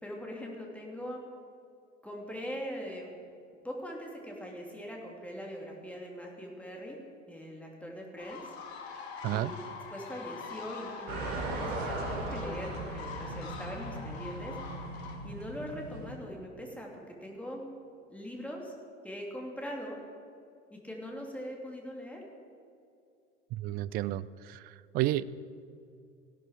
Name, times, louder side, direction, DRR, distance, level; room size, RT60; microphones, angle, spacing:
voice 1, 0.0-1.2 2.0-3.1 3.6-7.0 7.3-8.5 9.3-9.6 9.9-14.6 15.2-17.6 18.1-18.7 19.0-20.0 20.7-22.2, equal, 5° left, -1 dB, 2.7 m, -41 dB
sound 1, 8.2-15.2, left 5 dB, 60° left, 2.0 m, -44 dB
voice 2, 9.2-9.5 23.5-25.2, right 15 dB, 25° right, 18 dB, 0.4 m, -32 dB
sound 2, 11.1-16.1, right 2 dB, 45° right, 3.1 m, -38 dB
16.5 x 11.5 x 4.9 m, 2.4 s
figure-of-eight pair, 80°, 37 cm